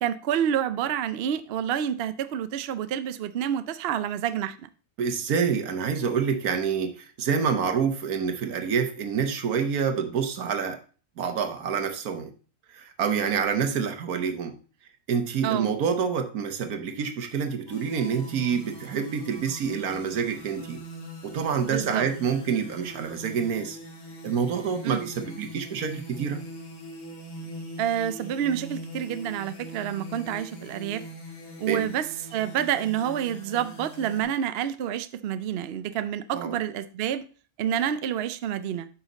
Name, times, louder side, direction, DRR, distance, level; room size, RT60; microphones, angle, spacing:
voice 1, 0.0-4.7 15.4-15.7 21.7-22.1 24.8-25.0 27.8-31.0 31.6-37.2 37.6-38.9, right 9 dB, 60° right, 0.7 m, -28 dB
voice 2, 5.0-10.8 11.2-12.3 12.7-14.5 15.1-20.8 21.2-23.8 24.2-26.4 31.7-31.8 36.3-36.5, right 6 dB, 85° right, 1.5 m, -27 dB
sound 1, 17.7-34.2, equal, 80° left, 2.1 m, -42 dB
8.9 x 5.7 x 4.0 m
omnidirectional pair, 1.5 m